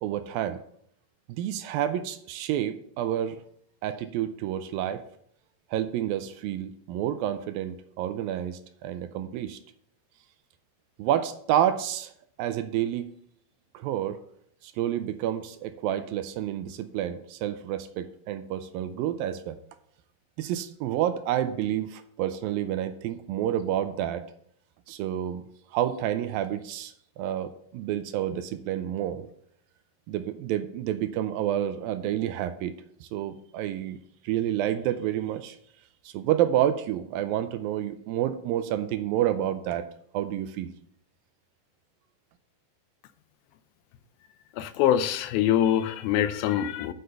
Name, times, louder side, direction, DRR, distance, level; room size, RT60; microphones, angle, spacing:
voice 1, 0.0-0.6 1.3-3.4 3.8-5.0 5.7-9.6 11.0-12.1 12.4-13.1 13.7-14.2 14.6-19.6 20.4-24.3 24.9-25.4 25.7-29.3 30.1-32.7 33.0-34.0 34.2-35.6 36.1-39.9 40.1-40.7, right 11 dB, 80° right, 11 dB, 2.3 m, -29 dB
voice 2, 44.6-46.9, left 11 dB, 80° left, 12 dB, 2.4 m, -24 dB
7.8 x 6.4 x 6.8 m, 0.67 s
omnidirectional pair, 4.4 m